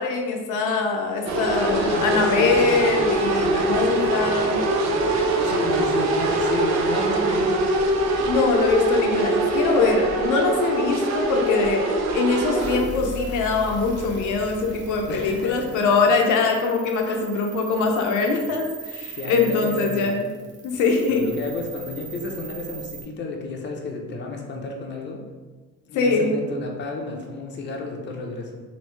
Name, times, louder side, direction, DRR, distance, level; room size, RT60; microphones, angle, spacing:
voice 1, 0.0-4.6 8.3-20.3 20.6-21.3 25.9-26.4, left 4 dB, 80° left, 2 dB, 0.6 m, -23 dB
voice 2, 1.2-2.7 3.4-3.6 5.4-7.6 15.1-15.8 17.0-17.2 19.1-20.1 21.1-25.2 25.9-28.6, left 3 dB, 40° left, 1 dB, 0.6 m, -32 dB
sound 1, 1.3-12.8, right 2 dB, 60° right, 0.6 m, -23 dB
sound 2, 12.6-23.0, right 5 dB, 35° right, 0.9 m, -39 dB
3.1 x 2.6 x 3.1 m, 1.3 s
cardioid pair, 90°, 30 cm